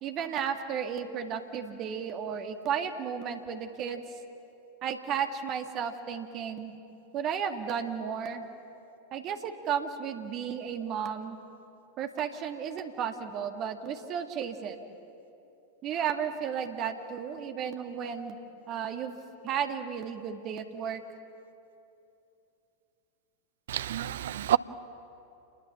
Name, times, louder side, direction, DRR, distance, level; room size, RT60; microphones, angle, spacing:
voice 1, 0.0-4.0 4.8-6.7 7.1-8.4 9.1-11.4 12.0-14.8 15.8-18.4 18.7-19.1 19.4-21.0, right 7 dB, 35° right, 1.8 m, -33 dB
voice 2, 23.7-24.6, right 11 dB, 60° right, 0.5 m, -28 dB
28.0 x 20.5 x 7.2 m
figure-of-eight pair, 90°, 0 cm